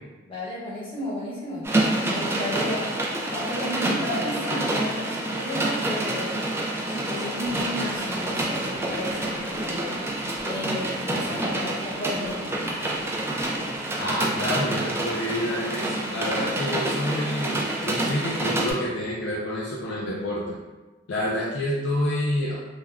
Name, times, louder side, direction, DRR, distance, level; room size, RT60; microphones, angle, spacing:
voice 1, 0.2-6.4 6.9-10.1 10.4-12.9, left 1 dB, 30° left, -9 dB, 1.1 m, -33 dB
sound 1, 1.6-18.7, right 1 dB, 15° right, 0.3 m, -28 dB
sound 2, 7.4-13.8, equal, 65° right, 1.0 m, -42 dB
voice 2, 14.0-20.5 21.1-22.5, left 1 dB, 65° left, -5 dB, 0.4 m, -28 dB
3.2 x 2.2 x 2.4 m, 1.2 s
head